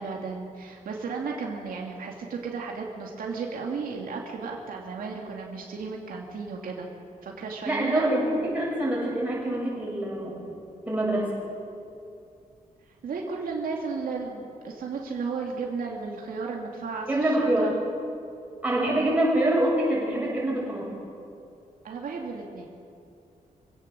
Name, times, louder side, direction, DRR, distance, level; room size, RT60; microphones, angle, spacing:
voice 1, 0.0-6.9 7.2-8.1 13.0-17.7 21.8-22.7, right 4 dB, 75° right, 0 dB, 2.5 m, -34 dB
voice 2, 7.6-10.4 10.9-11.3 17.1-17.7 18.6-20.9, right 1 dB, 10° right, -5 dB, 7.4 m, -25 dB
26.0 x 17.0 x 7.5 m, 2.6 s
wide cardioid pair, 180°, 15 cm